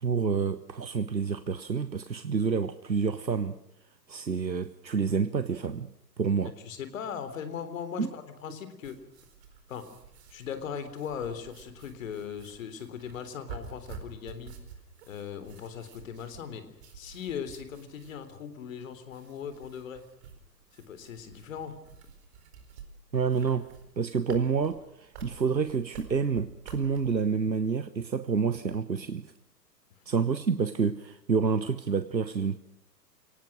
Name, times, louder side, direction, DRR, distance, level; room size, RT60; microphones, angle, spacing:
voice 1, 0.0-3.6 4.1-6.5 8.0-8.1 23.1-23.7 24.0-29.3 30.1-32.6, right 5 dB, 85° right, 13 dB, 1.2 m, -28 dB
voice 2, 6.7-9.0 9.7-9.9 10.3-14.6 15.1-16.6 16.9-20.0 20.7-21.7, left 7 dB, 50° left, 10 dB, 3.9 m, -39 dB
sound 1, 8.8-27.1, right 6 dB, 40° right, 4.5 m, -50 dB
29.5 x 18.5 x 6.3 m, 0.80 s
figure-of-eight pair, 125°, 50 cm